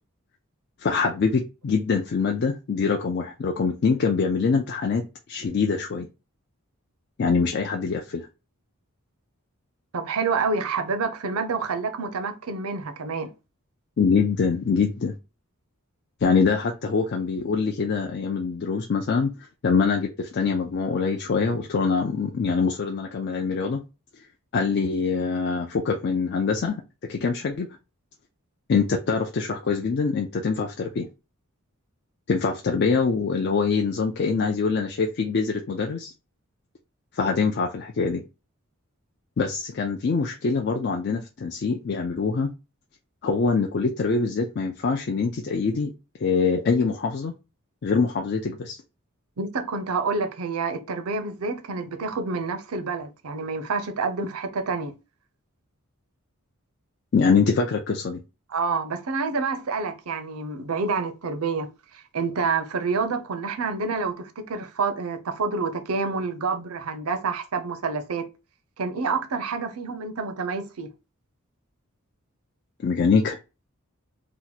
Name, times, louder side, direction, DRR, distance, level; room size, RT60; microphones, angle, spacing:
voice 1, 0.8-5.0 5.3-6.1 7.2-8.3 14.0-15.1 16.2-23.8 24.5-26.8 27.1-27.7 28.7-31.1 32.3-36.1 37.1-38.2 39.4-42.5 43.2-45.9 46.2-47.3 47.8-48.8 57.1-58.2 72.8-73.4, left 5 dB, 50° left, 0.4 m, -24 dB
voice 2, 9.9-13.3 49.4-54.9 58.5-68.3 68.8-70.9, right 4 dB, 85° right, 0.6 m, -28 dB
2.9 x 2.1 x 3.9 m
head